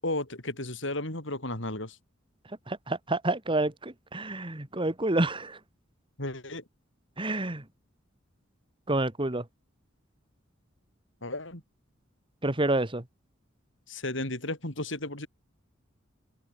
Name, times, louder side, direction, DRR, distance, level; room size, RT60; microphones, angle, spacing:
voice 1, 0.0-2.0 6.2-6.6 11.2-11.6 13.9-15.3, left 2 dB, 65° left, 7.3 m, -34 dB
voice 2, 2.7-5.6 7.2-7.6 8.9-9.4 12.4-13.0, right 2 dB, 25° right, 2.1 m, -28 dB
head